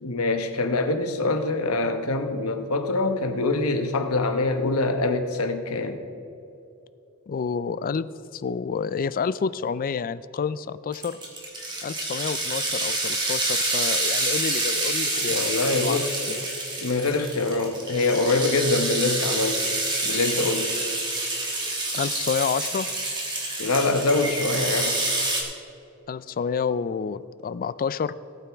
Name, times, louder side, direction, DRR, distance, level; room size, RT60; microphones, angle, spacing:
voice 1, 0.0-6.0 15.1-16.2 16.8-19.7 20.0-20.8 23.6-25.0, left 3 dB, 90° left, 7 dB, 1.0 m, -24 dB
voice 2, 7.3-11.2 11.8-16.5 21.9-22.9 26.1-28.1, left 6 dB, 40° left, 16 dB, 0.3 m, -29 dB
sound 1, 10.9-25.4, right 2 dB, 20° right, 2.1 m, -27 dB
18.0 x 9.0 x 3.5 m, 2.8 s
head